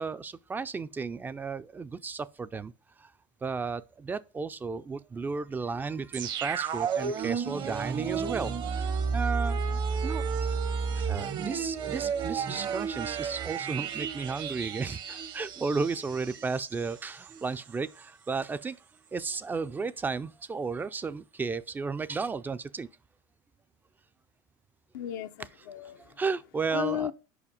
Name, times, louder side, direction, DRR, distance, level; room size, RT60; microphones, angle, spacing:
voice 1, 0.0-2.7 3.0-3.1 3.4-9.6 10.0-10.6 11.0-18.9 19.1-22.9 25.7-27.1, right 4 dB, 20° right, 0.3 m, -34 dB
sound 1, 6.1-16.9 17.2-17.3, right 6 dB, 45° right, 0.8 m, -32 dB
voice 2, 24.9-26.1 26.7-27.1, left 12 dB, 90° left, 0.6 m, -34 dB
5.2 x 4.9 x 4.9 m
supercardioid pair, 105°, 10 cm